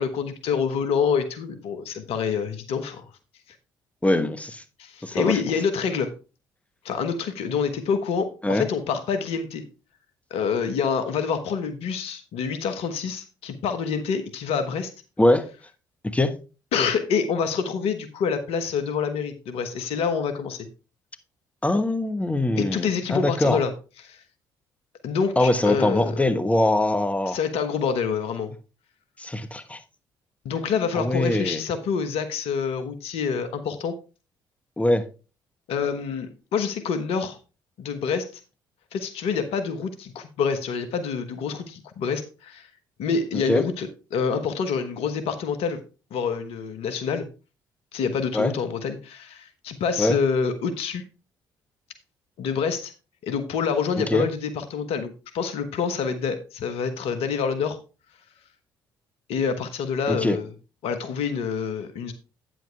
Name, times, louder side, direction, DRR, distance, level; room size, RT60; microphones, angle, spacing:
voice 1, 0.0-3.0 4.8-6.1 6.8-9.6 10.3-14.9 16.7-20.7 22.5-23.7 24.0-24.2 25.0-26.2 27.3-28.5 30.4-34.0 35.7-37.4 37.8-38.3 38.9-42.7 43.0-45.8 46.1-47.3 47.9-51.0 52.4-52.9 53.2-57.8 59.3-60.5 60.8-62.1, left 6 dB, 65° left, 1.2 m, -27 dB
voice 2, 4.0-4.6 5.0-5.4 8.4-8.7 15.2-15.5 16.1-16.3 21.6-23.6 25.4-27.4 29.2-29.8 30.9-31.6 34.8-35.0 43.3-43.6 48.3-48.5 50.0-50.2 54.0-54.3 60.1-60.4, left 1 dB, 10° left, 1.3 m, -22 dB
9.2 x 7.7 x 3.4 m
hypercardioid pair, 50°, 11 cm